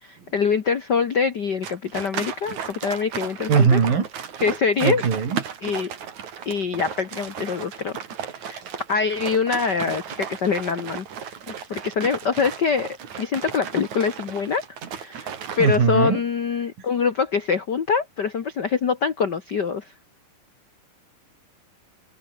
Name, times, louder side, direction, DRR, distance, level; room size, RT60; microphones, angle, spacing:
voice 1, 0.0-3.8 4.4-5.0 5.6-5.9 6.4-8.0 8.4-8.6 8.9-11.1 11.7-14.6 14.9-19.9, left 5 dB, 65° left, 1.0 m, -24 dB
sound 1, 1.6-15.8, right 8 dB, 60° right, 3.7 m, -35 dB
voice 2, 3.5-4.1 4.8-5.4 15.6-16.2, right 6 dB, 80° right, 6.0 m, -19 dB
omnidirectional pair, 4.0 m